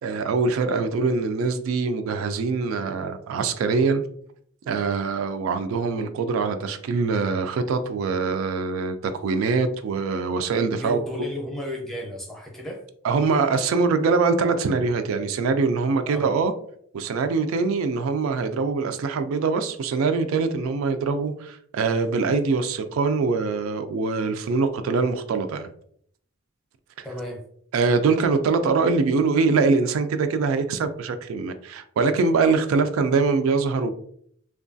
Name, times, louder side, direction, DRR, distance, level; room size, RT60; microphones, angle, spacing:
voice 1, 0.0-4.0 4.7-11.0 13.0-16.5 16.9-25.7 27.0-27.1 27.7-33.9, right 4 dB, 80° right, 0.3 m, -23 dB
voice 2, 10.7-12.8 16.1-16.3 27.0-27.4, left 1 dB, ahead, 0.6 m, -33 dB
3.0 x 2.3 x 2.5 m
head